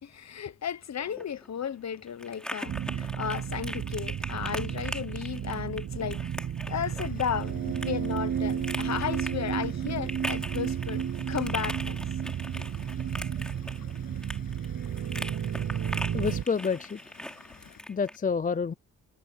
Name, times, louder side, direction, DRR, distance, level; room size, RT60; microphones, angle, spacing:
voice 1, 0.0-6.2 6.7-12.0 12.6-12.7, left 8 dB, 50° left, 1.0 m, -34 dB
sound 1, 1.0-18.2, equal, ahead, 3.8 m, -41 dB
sound 2, 2.7-16.4, right 9 dB, 50° right, 0.8 m, -32 dB
sound 3, 6.7-17.8, left 8 dB, 75° left, 7.8 m, -55 dB
voice 2, 16.1-17.0 17.9-18.7, left 5 dB, 25° left, 0.5 m, -29 dB
wide cardioid pair, 145°, 35 cm